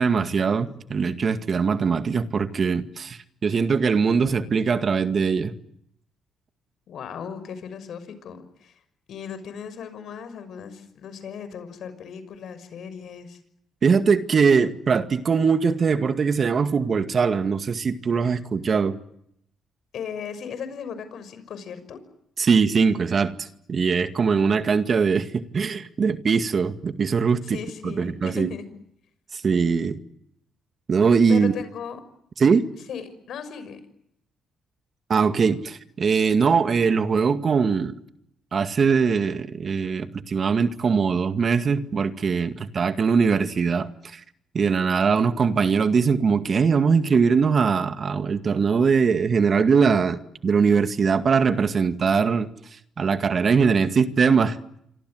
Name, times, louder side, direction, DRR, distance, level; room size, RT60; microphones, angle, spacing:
voice 1, 0.0-5.5 13.8-19.0 22.4-27.6 27.8-28.5 29.3-30.0 30.9-31.5 32.4-32.7 35.1-38.0 38.5-44.2 44.5-52.5 53.0-54.6, right 5 dB, 45° right, 2.1 m, -21 dB
voice 2, 6.9-8.8 9.1-13.4 19.9-22.0 27.4-28.6 31.3-32.0 32.7-33.8, left 7 dB, 65° left, 6.2 m, -37 dB
27.5 x 25.0 x 7.9 m
cardioid pair, 80°, 0 cm